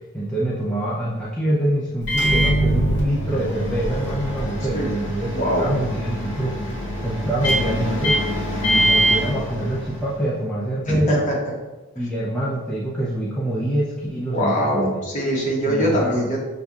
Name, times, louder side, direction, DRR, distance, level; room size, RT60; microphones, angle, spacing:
voice 1, 0.1-5.3 5.6-6.6 7.0-8.2 8.6-11.2 12.0-15.0 15.7-16.3, right 1 dB, 5° left, -7 dB, 0.4 m, -25 dB
Microwave oven, 2.0-10.2, right 1 dB, 55° left, 1.1 m, -23 dB
voice 2, 10.9-11.3 14.3-16.4, equal, 35° left, -3 dB, 0.9 m, -22 dB
5.8 x 2.6 x 2.3 m, 1.1 s
head